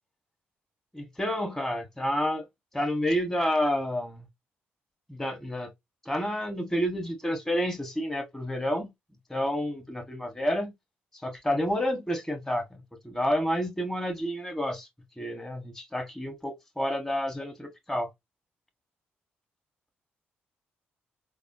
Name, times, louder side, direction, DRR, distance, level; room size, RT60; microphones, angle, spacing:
voice 1, 0.9-2.4 2.7-4.2 5.1-5.7 6.0-8.9 9.3-10.7 11.2-12.7 13.0-14.9 15.2-18.1, equal, 10° left, 1.4 m, -29 dB
3.4 x 2.1 x 2.6 m
hypercardioid pair, 45°, 5 cm